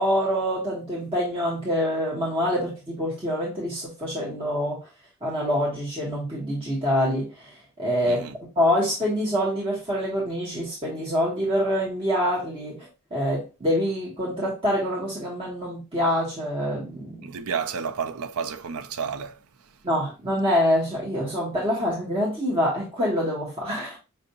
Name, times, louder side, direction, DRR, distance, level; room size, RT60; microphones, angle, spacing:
voice 1, 0.0-4.8 5.2-8.3 8.5-12.8 13.1-17.3 19.8-24.0, equal, 25° right, 1.2 m, -25 dB
voice 2, 8.0-8.3 17.2-19.4, right 6 dB, 85° right, 0.5 m, -31 dB
5.5 x 2.6 x 2.7 m
head